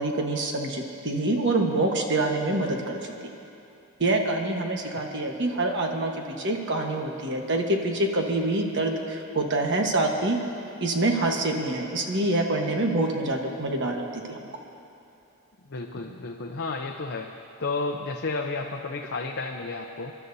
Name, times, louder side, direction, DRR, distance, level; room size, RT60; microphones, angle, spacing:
voice 1, 0.0-3.3 4.0-10.4 10.8-14.5, right 2 dB, 55° right, 2 dB, 1.3 m, -26 dB
voice 2, 15.7-17.3 17.6-20.1, left 3 dB, 50° left, 2 dB, 0.6 m, -32 dB
27.5 x 12.0 x 2.7 m, 2.9 s
head